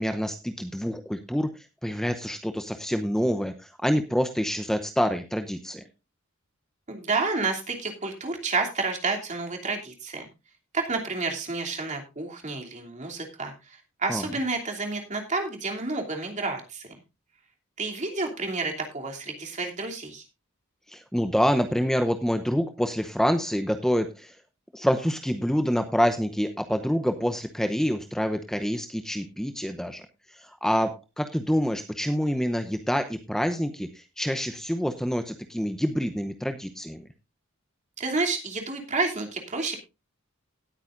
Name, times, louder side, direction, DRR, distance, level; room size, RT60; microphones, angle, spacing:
voice 1, 0.0-5.8 14.1-14.2 20.9-24.3 24.7-30.0 30.3-37.1, equal, ahead, 7 dB, 0.8 m, -27 dB
voice 2, 6.9-10.2 10.7-16.9 17.8-20.2 38.0-39.8, right 3 dB, 35° right, 2 dB, 2.9 m, -30 dB
18.5 x 8.9 x 2.5 m, 0.26 s
head